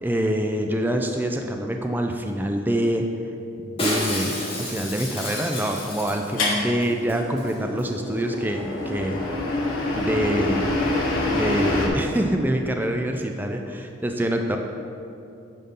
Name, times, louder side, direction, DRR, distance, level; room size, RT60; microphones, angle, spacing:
voice 1, 0.0-3.0 3.6-9.3 9.9-10.7 11.3-14.6, right 1 dB, 10° right, 3 dB, 0.3 m, -25 dB
Shatter, 3.8-6.5 6.8-6.9 7.1-7.5 7.8-7.9, left 1 dB, 30° left, 1.7 m, -30 dB
sound 1, 6.4-11.9, left 2 dB, 85° left, 1.5 m, -26 dB
9.5 x 5.3 x 3.7 m, 2.7 s
head